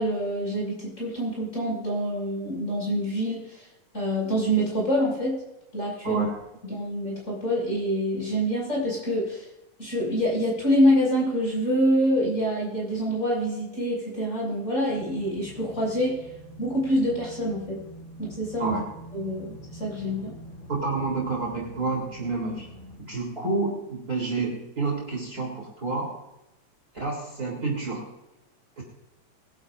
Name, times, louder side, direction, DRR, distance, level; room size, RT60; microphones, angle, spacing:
voice 1, 0.0-3.6 3.9-5.4 5.7-6.2 6.7-9.4 9.8-16.2 16.6-17.8 18.2-18.8 19.1-20.3, equal, 25° left, -3 dB, 6.3 m, -26 dB
voice 2, 6.0-6.4 18.6-18.8 20.7-22.7 23.0-26.1 26.9-28.1 28.8-28.9, right 3 dB, 30° right, -1 dB, 3.8 m, -29 dB
sound 1, 14.9-23.0, right 1 dB, 45° left, 5.7 m, -45 dB
24.0 x 12.0 x 2.6 m, 0.93 s
omnidirectional pair, 3.3 m